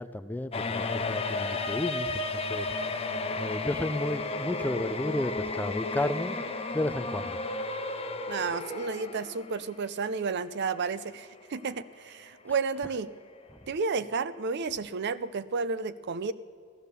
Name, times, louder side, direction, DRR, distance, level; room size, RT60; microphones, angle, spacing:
voice 1, 0.0-2.2 2.5-2.7 3.4-6.4 6.7-7.4, left 1 dB, 10° left, 13 dB, 0.3 m, -32 dB
sound 1, 0.5-9.8 10.1-10.2 11.1-11.2 11.6-11.7, left 3 dB, 30° left, 0.9 m, -33 dB
voice 2, 8.3-13.1 13.7-16.3, right 4 dB, 55° right, 16 dB, 0.5 m, -32 dB
15.5 x 13.5 x 6.8 m, 2.2 s
head